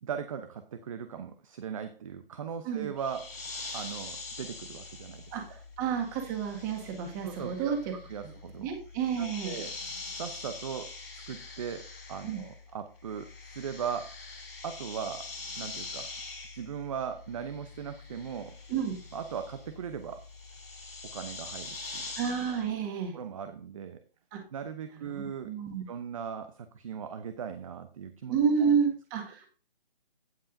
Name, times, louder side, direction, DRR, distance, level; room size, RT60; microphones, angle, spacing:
voice 1, 0.0-3.4 3.7-5.6 7.2-8.7 9.2-9.8 10.1-11.0 11.3-14.2 14.6-15.3 15.6-16.1 16.5-18.6 19.1-20.2 21.0-22.1 22.5-22.6 23.1-24.0 24.5-25.5 25.9-28.4, right 7 dB, 35° right, 9 dB, 0.8 m, -39 dB
sound 1, 3.0-12.7 13.0-22.7, left 3 dB, 80° left, 5.1 m, -44 dB
voice 2, 5.8-7.8 8.6-9.6 12.2-12.4 18.7-18.9 22.2-23.2 24.3-24.4 25.0-25.8 28.3-29.5, right 7 dB, 20° right, 3 dB, 1.9 m, -30 dB
16.5 x 5.5 x 2.7 m, 0.38 s
figure-of-eight pair, 150°, 29 cm